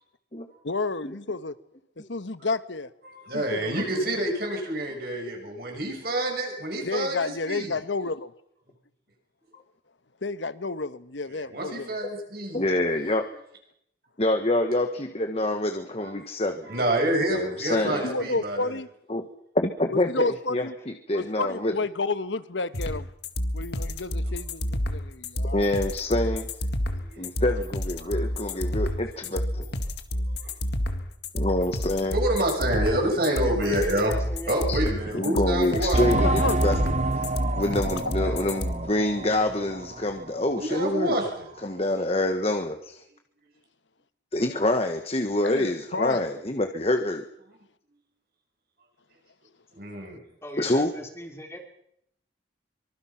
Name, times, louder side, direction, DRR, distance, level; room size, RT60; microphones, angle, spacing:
voice 1, 0.6-1.6 2.0-2.9 3.3-4.2 6.8-8.3 10.2-12.0 17.8-18.9 19.9-20.7 21.1-23.1 23.5-25.7 36.2-36.6 38.3-38.4 45.4-46.3 49.9-50.0, left 3 dB, 80° left, 1.2 m, -31 dB
voice 2, 3.0-7.8 11.4-12.6 16.0-16.1 16.6-18.7 27.1-27.2 28.0-28.2 28.7-28.8 32.1-34.1 34.5-36.0 40.6-41.5 49.7-50.2, right 1 dB, 55° right, 6.7 m, -28 dB
voice 3, 12.5-13.3 14.2-16.7 17.3-18.1 19.1-19.3 19.5-20.6 21.1-21.7 25.5-26.5 27.2-29.6 31.3-32.2 34.7-34.8 35.1-36.8 37.1-37.3 37.6-41.2 41.6-43.0 44.3-47.2 50.6-50.9, left 1 dB, 35° left, 1.3 m, -26 dB
voice 4, 17.6-18.3 33.1-34.7 50.1-51.6, equal, 15° left, 3.4 m, -39 dB
sound 1, 22.7-38.7, left 1 dB, 65° left, 2.0 m, -29 dB
sound 2, 35.9-40.2 40.5-40.6 41.2-41.3, right 2 dB, 35° right, 0.9 m, -28 dB
24.5 x 24.5 x 5.9 m
head